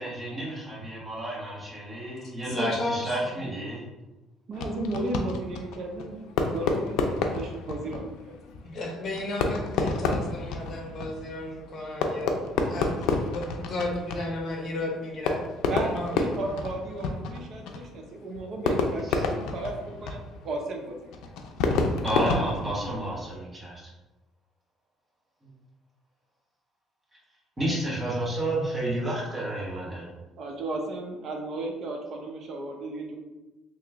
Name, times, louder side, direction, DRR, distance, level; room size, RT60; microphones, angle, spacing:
voice 1, 0.0-3.9 19.1-19.2 22.0-23.8 27.6-30.1, right 1 dB, 20° right, -6 dB, 1.4 m, -31 dB
voice 2, 2.4-3.4 8.6-12.4 12.6-15.4 15.7-16.4, left 1 dB, 45° left, 0 dB, 1.0 m, -34 dB
Fireworks, 4.5-23.3, left 3 dB, 80° left, 0.4 m, -30 dB
voice 3, 4.5-8.3 15.6-21.1 22.1-23.0 29.3-29.4 30.4-33.2, right 2 dB, 50° right, 1 dB, 0.7 m, -35 dB
3.1 x 2.9 x 3.5 m, 1.0 s
cardioid pair, 140°, 0 cm